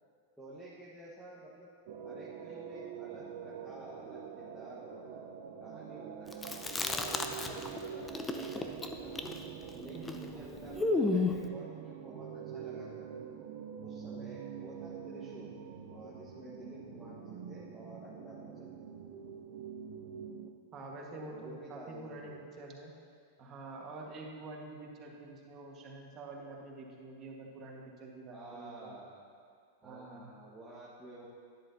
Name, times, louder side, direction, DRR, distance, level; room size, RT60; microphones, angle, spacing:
voice 1, 0.4-1.7 2.0-5.2 5.6-6.4 6.9-9.4 9.7-13.1 13.8-15.6 15.9-18.9 21.0-22.4 28.3-29.2 29.8-31.3, right 1 dB, 5° right, -9 dB, 1.5 m, -51 dB
sound 1, 1.9-20.5, right 7 dB, 60° right, 0.8 m, -45 dB
Chewing mastication, 6.3-7.8 8.1-11.5, left 3 dB, 15° left, 0.6 m, -33 dB
voice 2, 6.9-7.6 9.9-10.2 20.7-22.9 23.4-28.9 29.8-30.3, right 2 dB, 35° right, -1 dB, 1.7 m, -47 dB
10.5 x 10.5 x 2.8 m, 2.2 s
hypercardioid pair, 120°, 0 cm